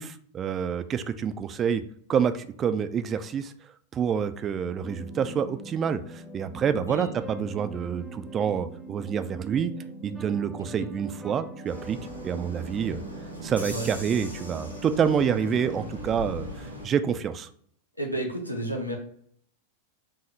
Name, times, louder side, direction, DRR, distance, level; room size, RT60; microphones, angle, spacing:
voice 1, 0.0-1.8 2.1-3.5 3.9-9.7 10.0-12.0 12.2-13.0 13.4-17.5, right 7 dB, 25° right, 11 dB, 0.3 m, -27 dB
sound 1, 4.8-16.5, right 3 dB, 5° right, 0.7 m, -42 dB
sound 2, 11.6-16.9, left 1 dB, 90° right, 1.6 m, -40 dB
voice 2, 18.0-19.0, right 1 dB, 85° left, 2 dB, 0.8 m, -31 dB
4.7 x 2.8 x 3.3 m, 0.62 s
figure-of-eight pair, 90°, 0 cm